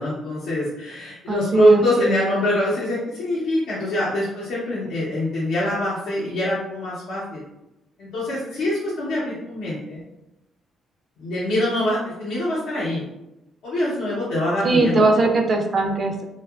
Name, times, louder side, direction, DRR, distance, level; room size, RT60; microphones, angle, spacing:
voice 1, 0.0-7.4 8.0-10.0 11.2-13.0 13.6-15.3, equal, 85° left, -8 dB, 0.7 m, -24 dB
voice 2, 1.3-2.1 14.6-16.2, right 2 dB, 40° right, 3 dB, 0.4 m, -20 dB
2.7 x 2.3 x 2.3 m, 0.93 s
cardioid pair, 90°, 0 cm